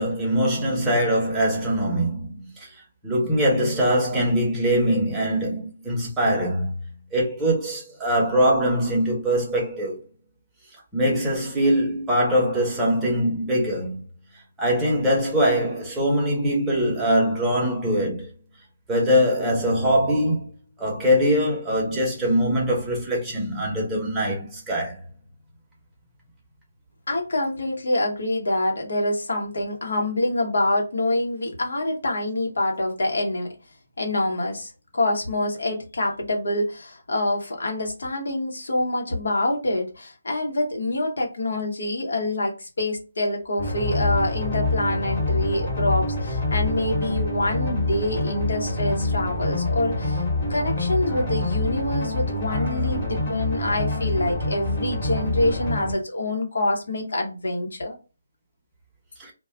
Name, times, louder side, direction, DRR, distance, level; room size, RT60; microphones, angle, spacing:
voice 1, 0.0-2.7 3.0-6.7 7.1-10.0 10.9-14.0 14.6-18.3 18.9-20.5 20.8-25.0 51.1-51.2 52.4-52.9 53.6-53.9 59.2-59.3, equal, 10° right, 0.9 m, -22 dB
voice 2, 27.1-33.5 34.0-50.2 50.5-57.9, left 1 dB, 70° left, 1.0 m, -26 dB
sound 1, 43.6-55.9, left 2 dB, 35° left, 1.2 m, -26 dB
2.4 x 2.3 x 3.3 m
figure-of-eight pair, 160°, 0 cm